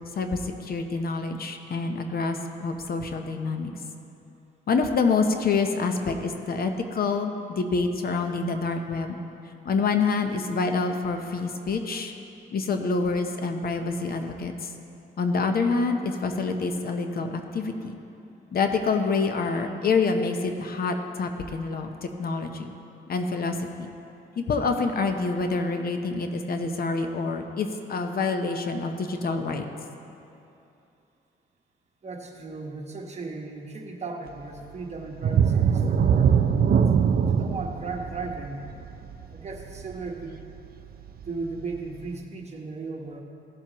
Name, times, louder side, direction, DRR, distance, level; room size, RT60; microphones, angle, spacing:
voice 1, 0.2-3.7 4.7-9.1 9.6-12.1 12.5-14.7 15.2-17.9 18.5-22.7 23.1-23.9 24.4-29.7, left 4 dB, 50° left, 5 dB, 0.8 m, -27 dB
voice 2, 32.0-36.4 37.2-38.7 39.3-40.4 41.2-43.2, right 3 dB, 35° right, 1 dB, 1.2 m, -36 dB
sound 1, 35.2-40.7 41.1-41.2 41.7-41.8, right 7 dB, 50° right, 0.5 m, -22 dB
16.5 x 7.3 x 3.0 m, 2.8 s
cardioid pair, 90°, 20 cm